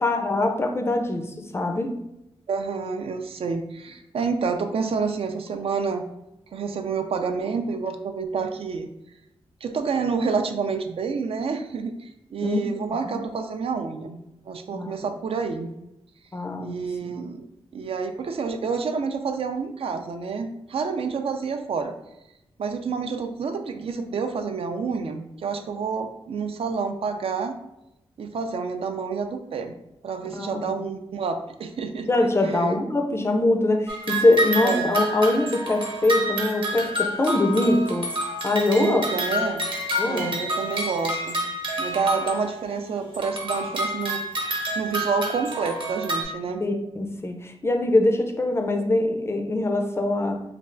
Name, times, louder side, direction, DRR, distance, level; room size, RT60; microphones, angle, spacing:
voice 1, 0.0-2.0 12.4-12.7 13.1-13.2 14.7-14.9 16.3-16.8 30.3-30.7 32.1-38.1 38.4-39.0 40.0-40.3 46.6-50.4, left 2 dB, 25° left, 4 dB, 0.4 m, -23 dB
voice 2, 2.5-6.0 6.5-8.9 9.6-14.2 14.5-15.7 16.6-17.5 17.7-22.0 22.6-27.6 28.2-29.7 30.0-32.8 34.6-34.9 38.8-39.6 40.0-41.4 41.8-44.2 44.8-46.6, right 5 dB, 65° right, 6 dB, 0.4 m, -28 dB
sound 1, 33.9-42.7 43.1-46.2, right 1 dB, 50° right, 0.9 m, -28 dB
3.2 x 2.4 x 3.7 m, 0.87 s
wide cardioid pair, 115°, 10 cm